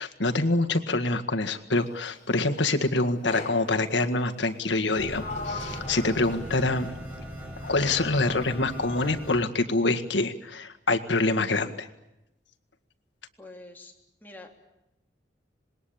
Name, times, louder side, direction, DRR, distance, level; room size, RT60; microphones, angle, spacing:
voice 1, 0.0-6.9 7.6-11.9, left 2 dB, 90° left, 6 dB, 1.9 m, -26 dB
Sliding door, 3.3-3.7 4.7-7.2 7.7-9.1, left 2 dB, 40° left, 3.2 m, -40 dB
sound 1, 5.0-9.4, equal, 10° right, 7.2 m, -39 dB
voice 2, 13.4-13.9 14.2-14.6, left 2 dB, 10° left, 1 dB, 3.4 m, -45 dB
26.5 x 21.0 x 8.8 m, 0.89 s
head